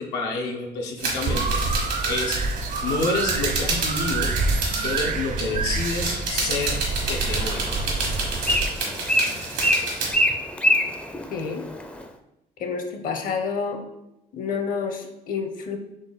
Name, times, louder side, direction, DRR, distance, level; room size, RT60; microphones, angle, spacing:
voice 1, 0.0-2.4 2.8-4.4 4.8-6.8 7.0-7.7, left 3 dB, 85° left, 0 dB, 0.8 m, -29 dB
sound 1, 1.0-5.1 5.4-10.1, right 3 dB, 85° right, 1.5 m, -29 dB
sound 2, 1.3-8.7, right 3 dB, 50° right, 0.5 m, -27 dB
Bird, 6.9-12.0, left 1 dB, 10° left, 0.4 m, -26 dB
voice 2, 11.3-11.7 12.6-13.8 14.3-15.8, left 5 dB, 55° left, 5 dB, 0.7 m, -29 dB
4.0 x 3.2 x 4.0 m, 0.89 s
cardioid pair, 110°, 17 cm